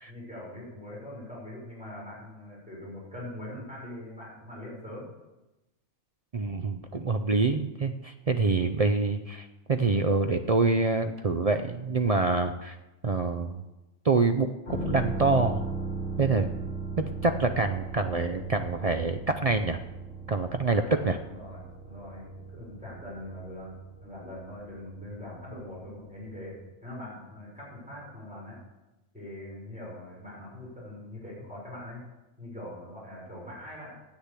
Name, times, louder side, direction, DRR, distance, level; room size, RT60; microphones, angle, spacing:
voice 1, 0.1-5.1 20.7-28.6 29.1-32.0 32.4-33.9, left 1 dB, 5° right, -5 dB, 5.6 m, -42 dB
voice 2, 6.3-12.8 13.0-13.6 14.0-15.7 16.2-16.5 17.0-19.8 20.3-21.2, right 3 dB, 50° right, 7 dB, 0.4 m, -26 dB
sound 1, 14.7-26.2 26.5-26.6, right 3 dB, 40° left, 2.0 m, -37 dB
10.0 x 8.1 x 8.2 m, 1.0 s
omnidirectional pair, 1.4 m